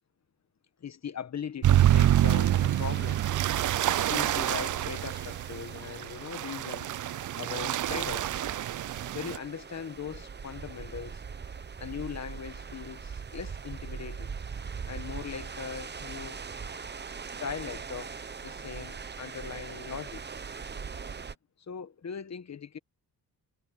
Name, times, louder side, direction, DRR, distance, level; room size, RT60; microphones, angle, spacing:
voice 1, 0.8-3.2 4.0-6.9 7.3-8.5 9.1-11.2 11.8-14.3 14.8-16.4 17.4-20.2 21.7-22.8, left 7 dB, 40° left, 1.3 m, -40 dB
sound 1, 1.6-9.4, right 13 dB, 50° right, 0.4 m, -26 dB
sound 2, 1.7-21.4, right 5 dB, 25° right, 0.9 m, -41 dB
wide cardioid pair, 150°, 40 cm